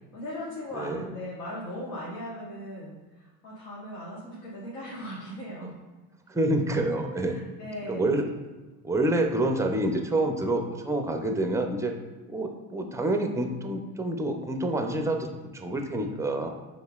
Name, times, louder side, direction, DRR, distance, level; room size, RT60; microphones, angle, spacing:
voice 1, 0.1-5.8 7.2-8.1, left 1 dB, 80° left, -6 dB, 1.3 m, -38 dB
voice 2, 6.3-7.4 7.9-8.3 8.8-11.9 12.3-16.5, right 1 dB, 5° right, 4 dB, 0.4 m, -27 dB
5.4 x 3.7 x 2.3 m, 1.2 s
supercardioid pair, 85°, 45 cm